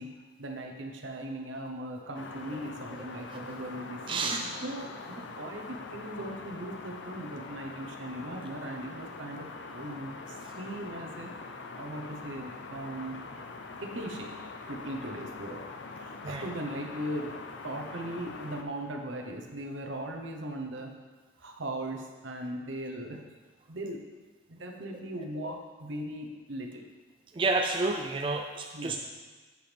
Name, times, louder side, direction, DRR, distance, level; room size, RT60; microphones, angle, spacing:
voice 1, 0.0-11.3 11.8-13.2 13.8-14.4 14.7-17.4 17.6-20.9 21.4-23.2 23.7-24.0 24.5-26.9 28.7-29.0, right 1 dB, 75° right, 3 dB, 0.9 m, -39 dB
sound 1, 2.1-18.6, left 3 dB, 65° left, 0.6 m, -43 dB
voice 2, 4.1-4.4 16.2-16.4 27.4-29.0, right 3 dB, 25° right, 4 dB, 0.3 m, -29 dB
8.0 x 7.8 x 3.4 m, 1.3 s
head